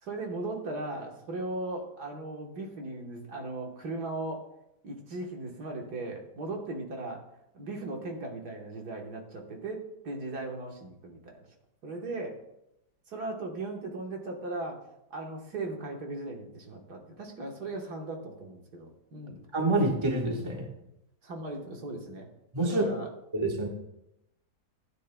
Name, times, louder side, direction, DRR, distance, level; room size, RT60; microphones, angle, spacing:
voice 1, 0.0-4.4 4.8-7.2 7.5-11.4 11.8-12.4 13.1-14.8 15.1-19.4 21.2-22.3 22.6-23.1, right 2 dB, 65° right, 1 dB, 1.9 m, -37 dB
voice 2, 19.5-20.7 22.5-22.8 23.3-23.7, right 2 dB, 15° right, 0 dB, 1.3 m, -27 dB
15.5 x 9.3 x 2.3 m, 0.85 s
omnidirectional pair, 1.8 m